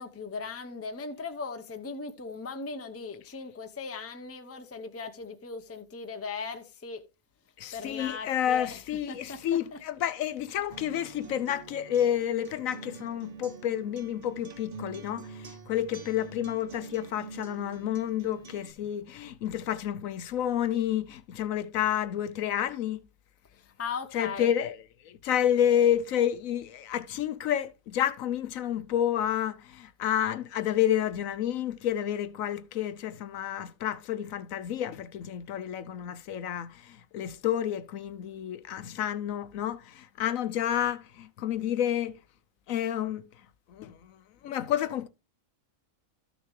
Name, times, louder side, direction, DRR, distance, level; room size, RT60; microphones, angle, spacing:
voice 1, 0.0-7.0 7.7-9.8 23.8-24.5, left 4 dB, 15° left, 0.6 m, -38 dB
voice 2, 7.6-23.0 24.1-42.2 42.7-43.3 43.7-45.1, left 10 dB, 70° left, 1.0 m, -30 dB
Acoustic guitar, 10.7-18.7, right 5 dB, 50° right, 0.5 m, -46 dB
13.0 x 6.5 x 3.1 m
omnidirectional pair, 1.5 m